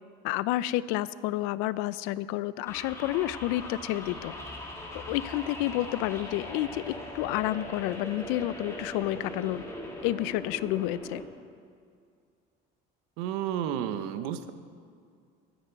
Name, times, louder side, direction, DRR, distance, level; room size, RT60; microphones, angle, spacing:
voice 1, 0.2-4.3 5.1-9.6 10.0-11.2, left 15 dB, 80° left, 17 dB, 0.5 m, -30 dB
sound 1, 2.7-11.2, left 1 dB, 15° left, 1.8 m, -40 dB
voice 2, 13.2-14.5, right 10 dB, 85° right, 10 dB, 0.9 m, -31 dB
22.0 x 9.2 x 4.6 m, 2.3 s
cardioid pair, 170°, 21 cm